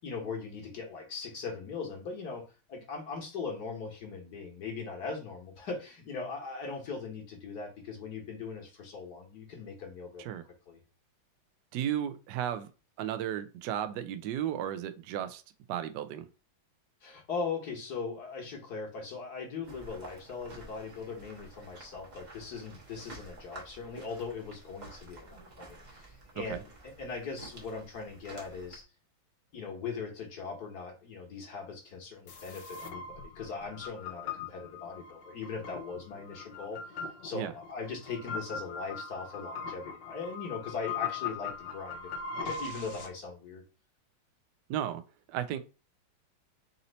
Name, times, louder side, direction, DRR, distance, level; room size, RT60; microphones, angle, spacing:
voice 1, 0.0-10.3 10.7-10.8 17.0-28.8 29.5-43.6, left 4 dB, 60° left, 1.6 m, -40 dB
voice 2, 11.7-12.7 13.0-15.4 15.7-16.3 26.4-26.6 37.3-37.5 44.7-45.0 45.3-45.6, right 10 dB, 75° right, 1.1 m, -34 dB
sound 1, 19.6-28.8, right 2 dB, 30° right, 1.0 m, -51 dB
sound 2, 32.3-43.1, left 5 dB, 75° left, 1.4 m, -40 dB
4.2 x 2.8 x 3.9 m
omnidirectional pair, 2.1 m